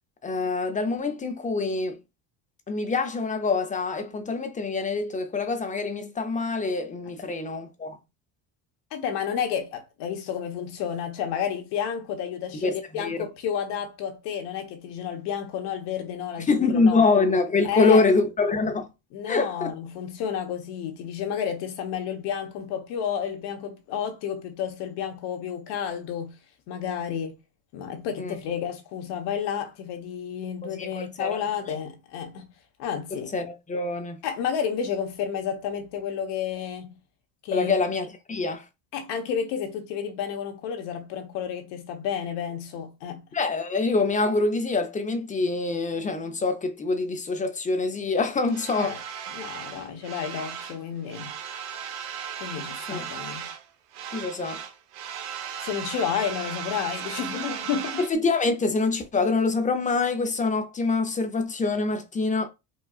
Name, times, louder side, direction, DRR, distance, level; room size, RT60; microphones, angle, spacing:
voice 1, 0.2-2.0 2.7-8.0 12.6-13.2 16.5-18.9 19.3-19.7 28.2-28.3 30.7-31.4 33.1-34.2 37.5-38.6 43.3-49.0 52.9-53.0 54.1-54.6 58.0-62.5, left 3 dB, 20° left, 0.5 m, -25 dB
voice 2, 8.9-17.1 17.6-18.0 19.1-26.4 26.7-27.4 27.7-32.5 32.8-33.3 34.2-37.0 37.4-37.7 38.9-43.2 48.8-49.0 49.3-51.3 52.4-53.5 55.6-58.0, left 8 dB, 65° left, 1.0 m, -31 dB
sound 1, 48.5-50.8 51.1-53.7 53.9-58.1, right 8 dB, 90° right, 0.8 m, -36 dB
4.3 x 2.3 x 2.3 m
supercardioid pair, 105°, 44 cm